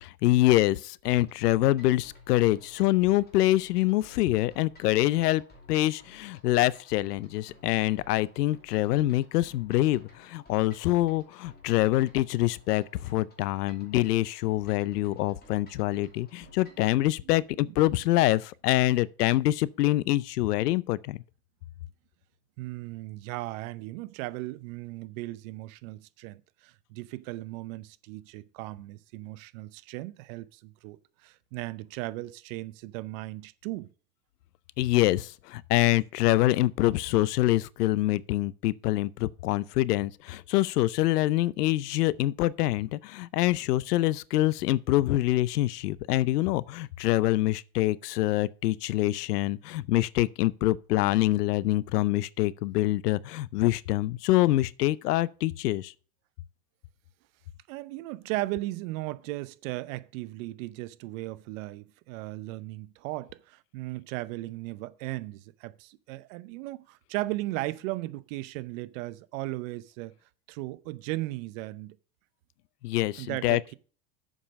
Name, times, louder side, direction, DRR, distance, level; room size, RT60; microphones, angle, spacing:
voice 1, 0.0-5.4 5.7-21.2 34.8-55.9 72.8-73.6, left 16 dB, 85° left, 0.6 m, -25 dB
sound 1, 1.0-16.9, left 2 dB, 20° left, 2.5 m, -55 dB
voice 2, 22.6-33.9 57.7-70.1 70.5-71.9 73.2-73.7, right 19 dB, 60° right, 0.8 m, -37 dB
7.4 x 5.4 x 6.4 m
supercardioid pair, 120°, 46 cm